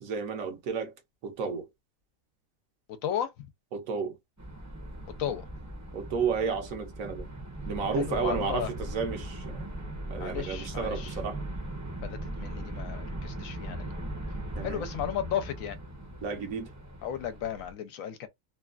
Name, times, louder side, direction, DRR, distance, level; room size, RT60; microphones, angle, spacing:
voice 1, 0.0-0.9 1.2-1.7 3.7-4.2 5.9-7.3 7.7-9.6 10.1-11.4 14.6-14.8 16.2-16.7, right 5 dB, 75° right, 1.1 m, -32 dB
voice 2, 3.0-3.5 5.2-5.5 8.0-8.7 10.2-11.1 12.0-13.9 14.6-15.8 17.0-18.3, left 9 dB, 75° left, 1.0 m, -34 dB
sound 1, 4.4-17.7, right 1 dB, 20° right, 0.5 m, -39 dB
3.0 x 2.2 x 2.4 m
omnidirectional pair, 1.5 m